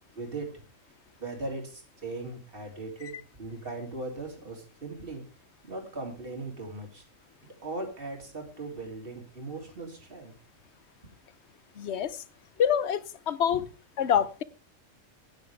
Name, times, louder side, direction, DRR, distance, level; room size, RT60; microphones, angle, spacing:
voice 1, 0.1-0.5 1.2-5.2 5.6-7.0 7.6-10.3 13.5-13.6, right 2 dB, 45° right, 3.4 m, -38 dB
voice 2, 11.8-12.2 12.6-13.6 14.0-14.4, left 8 dB, 60° left, 1.0 m, -26 dB
16.0 x 10.5 x 3.4 m
omnidirectional pair, 1.3 m